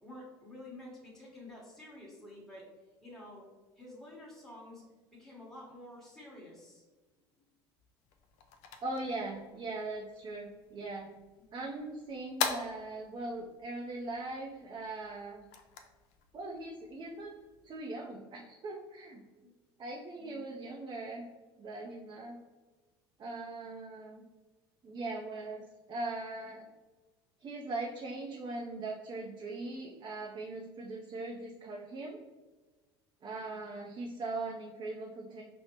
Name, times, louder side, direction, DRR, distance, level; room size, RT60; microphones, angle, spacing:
voice 1, 0.0-2.6 3.0-3.5 3.8-4.8 5.1-6.8 7.2-7.4 10.4-10.5 11.4-11.7 19.4-19.5 20.2-20.5 33.2-33.7, left 1 dB, 5° left, -6 dB, 1.1 m, -50 dB
sound 1, 8.0-17.8, left 6 dB, 60° left, 0.5 m, -44 dB
voice 2, 8.8-11.1 11.5-15.5 16.3-17.3 17.6-19.2 19.8-21.3 21.6-22.4 23.2-24.2 24.8-26.7 27.4-32.2 33.2-35.4, right 2 dB, 35° right, 0 dB, 0.5 m, -40 dB
5.0 x 2.0 x 2.9 m, 1.2 s
hypercardioid pair, 80°, 13 cm